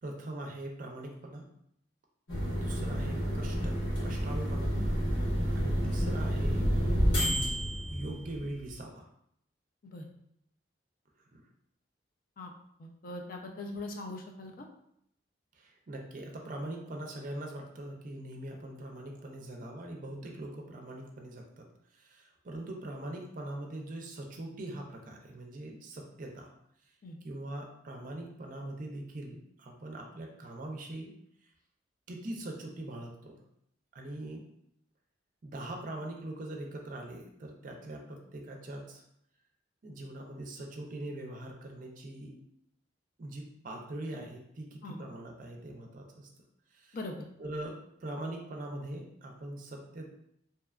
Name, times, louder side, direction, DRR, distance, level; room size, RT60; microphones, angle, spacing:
voice 1, 0.0-1.4 2.5-4.7 5.5-6.7 7.9-9.0 11.3-11.4 15.6-21.7 21.9-26.5 27.2-31.1 32.1-33.4 33.9-34.5 35.4-39.0 39.8-42.4 43.2-46.3 46.7-47.0 47.4-50.1, right 1 dB, 45° right, 1 dB, 0.4 m, -42 dB
sound 1, 2.3-8.7, equal, 90° left, 1.0 m, -29 dB
voice 2, 12.8-14.7 27.0-27.2 44.8-45.0 46.9-47.3, left 2 dB, 50° left, 2 dB, 0.4 m, -41 dB
2.7 x 2.2 x 2.3 m, 0.74 s
head